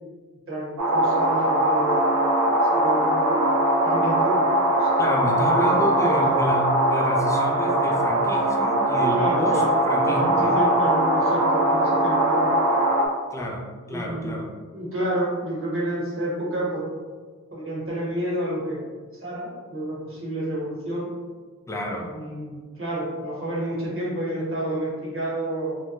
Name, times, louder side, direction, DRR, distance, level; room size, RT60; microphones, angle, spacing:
voice 1, 0.5-2.0 2.7-3.5 3.8-4.5 4.8-4.9 5.6-6.2 9.1-9.7 10.0-12.5 13.8-14.3 14.7-16.8 17.5-18.8 19.1-21.1 22.0-25.8, right 1 dB, 40° right, -6 dB, 1.1 m, -29 dB
sound 1, 0.8-13.1, right 1 dB, 70° right, 0.6 m, -21 dB
voice 2, 5.0-10.6 13.3-14.5 21.7-22.1, equal, 10° left, -1 dB, 0.4 m, -29 dB
3.2 x 2.2 x 2.9 m, 1.5 s
wide cardioid pair, 150°, 32 cm